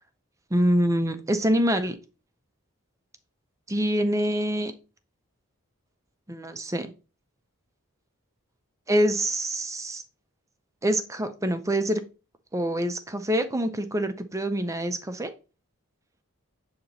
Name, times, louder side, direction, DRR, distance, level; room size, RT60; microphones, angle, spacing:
voice 1, 0.5-2.0 3.7-4.7 6.3-6.9 8.9-10.0 10.8-12.0 12.5-15.3, equal, 15° right, 9 dB, 0.5 m, -25 dB
8.2 x 2.9 x 4.0 m, 0.32 s
head